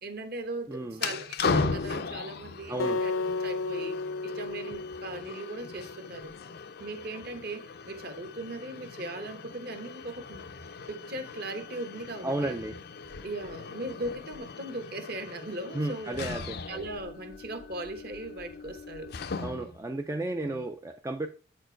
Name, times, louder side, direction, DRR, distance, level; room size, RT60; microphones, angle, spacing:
voice 1, 0.0-3.1 3.4-4.0 4.2-6.3 6.8-10.4 10.9-12.5 13.2-16.2 16.7-19.1 20.3-20.6, right 2 dB, 50° right, 1.1 m, -39 dB
voice 2, 0.7-1.0 2.7-3.0 12.2-12.8 15.7-16.6 19.4-21.3, right 2 dB, 15° right, 0.3 m, -33 dB
sound 1, 0.9-19.8, left 4 dB, 50° left, 0.5 m, -38 dB
Acoustic guitar, 2.8-6.0, left 3 dB, 80° left, 0.7 m, -33 dB
8.4 x 4.5 x 4.5 m
head